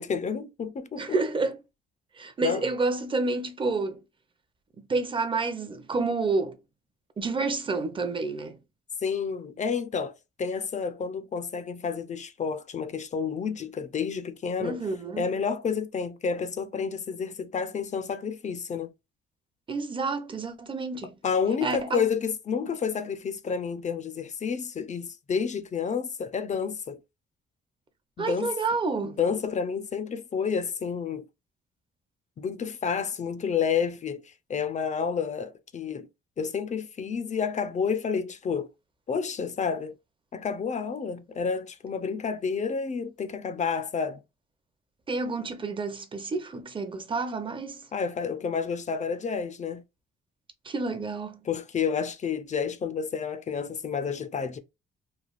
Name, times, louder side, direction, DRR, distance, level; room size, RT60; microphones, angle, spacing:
voice 1, 0.0-1.2 2.4-2.6 9.0-14.8 15.2-18.9 21.2-27.0 28.2-28.5 29.0-31.2 32.4-36.1 36.4-38.7 39.1-40.0 40.3-44.2 47.9-49.8 51.4-54.6, left 6 dB, 35° left, 0.5 m, -30 dB
voice 2, 1.0-1.6 2.2-4.0 4.9-6.6 7.2-8.6 14.6-15.3 19.7-21.2 21.6-22.0 28.2-29.2 45.1-47.8 50.6-51.4, right 3 dB, 25° right, 0.6 m, -29 dB
3.2 x 2.3 x 2.4 m
cardioid pair, 90°, 20 cm